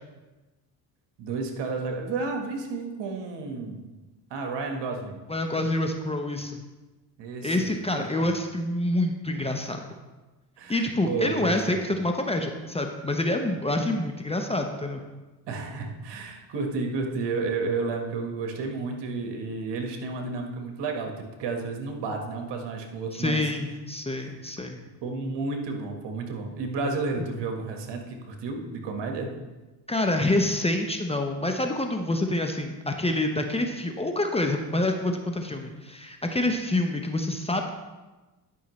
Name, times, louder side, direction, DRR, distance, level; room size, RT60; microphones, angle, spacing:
voice 1, 1.2-3.8 4.3-5.2 7.2-7.7 10.6-11.8 15.5-23.4 24.2-24.4 25.0-29.3, right 4 dB, 65° right, 3 dB, 1.5 m, -31 dB
voice 2, 5.3-6.6 7.4-9.8 10.7-15.0 23.1-24.8 29.9-37.7, left 1 dB, 15° left, 4 dB, 0.8 m, -27 dB
11.0 x 5.7 x 3.1 m, 1.2 s
supercardioid pair, 80°, 45 cm